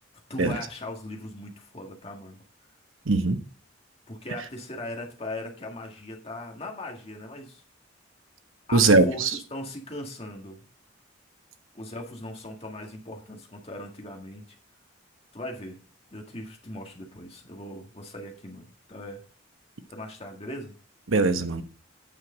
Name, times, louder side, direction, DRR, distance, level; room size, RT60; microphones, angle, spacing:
voice 1, 0.3-2.4 4.1-7.6 8.7-10.7 11.7-14.4 15.3-15.8 16.1-19.2 19.9-20.8, left 1 dB, 30° left, 1.8 m, -39 dB
voice 2, 3.1-3.4 8.7-9.4 21.1-21.6, right 3 dB, 80° right, 1.0 m, -21 dB
9.2 x 6.3 x 3.9 m
head